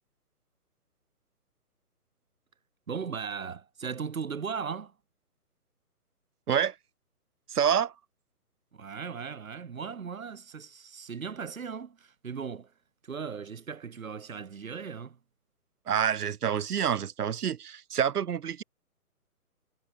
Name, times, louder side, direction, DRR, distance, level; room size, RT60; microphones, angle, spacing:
voice 1, 2.9-4.9 8.7-12.7 13.0-15.2, right 6 dB, 60° right, 1.4 m, -37 dB
voice 2, 7.5-7.9 15.9-18.6, right 8 dB, 80° right, 0.6 m, -27 dB
figure-of-eight pair, 140°, 45 cm